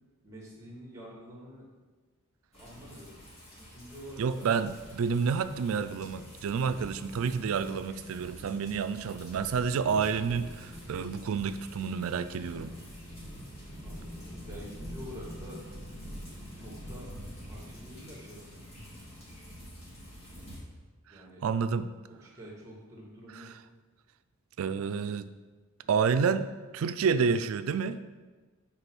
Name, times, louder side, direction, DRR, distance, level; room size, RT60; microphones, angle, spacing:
voice 1, 0.2-1.7 2.5-3.3 3.6-4.5 13.8-15.6 16.6-17.1 17.4-18.6 21.1-21.4 22.1-23.5 25.8-25.9, equal, 15° right, -3 dB, 1.7 m, -47 dB
sound 1, 2.5-20.6, equal, 30° left, 2.0 m, -46 dB
voice 2, 4.2-12.7 21.4-21.9 23.4-23.5 24.6-25.3 25.9-26.5 26.7-28.0, right 6 dB, 70° right, 12 dB, 0.3 m, -29 dB
5.6 x 4.4 x 6.0 m, 1.3 s
head